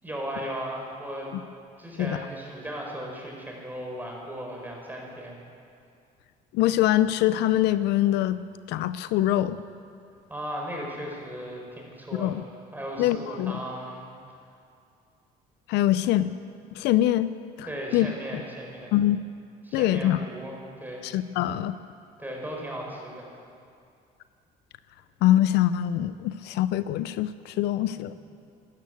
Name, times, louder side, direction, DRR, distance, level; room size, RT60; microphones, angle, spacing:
voice 1, 0.0-1.3 1.8-5.4 10.3-12.4 12.7-14.0 17.6-18.9 19.6-21.0 22.2-23.3, equal, 10° right, -1 dB, 4.6 m, -36 dB
voice 2, 6.5-8.4 8.7-9.6 12.2-12.4 13.0-13.6 15.7-16.3 16.7-17.3 17.6-17.7 17.9-18.1 18.9-19.2 19.7-20.2 21.0-21.8 25.2-28.1, left 13 dB, 85° left, 14 dB, 0.5 m, -23 dB
13.5 x 11.5 x 9.4 m, 2.4 s
cardioid pair, 110°, 17 cm